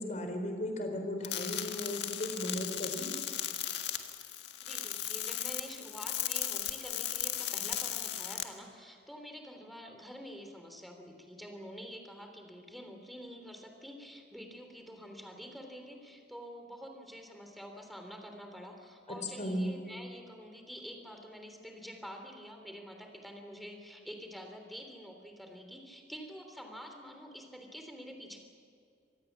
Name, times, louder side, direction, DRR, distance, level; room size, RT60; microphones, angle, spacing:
voice 1, 0.0-3.1 19.1-19.7, left 1 dB, 45° left, 5 dB, 4.1 m, -36 dB
sound 1, 1.2-8.4, left 11 dB, 70° left, 1.8 m, -36 dB
voice 2, 4.6-28.4, equal, ahead, 4 dB, 3.4 m, -47 dB
26.0 x 19.0 x 7.4 m, 2.3 s
head